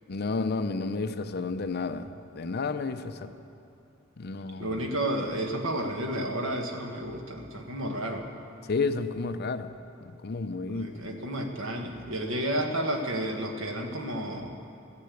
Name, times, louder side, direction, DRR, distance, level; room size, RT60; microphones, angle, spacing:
voice 1, 0.1-3.3 4.2-4.8 8.7-9.7 10.0-10.9, left 4 dB, 50° left, 10 dB, 0.6 m, -31 dB
voice 2, 4.6-8.3 10.7-14.5, right 1 dB, 75° right, 3 dB, 1.5 m, -31 dB
13.5 x 9.7 x 8.4 m, 2.6 s
head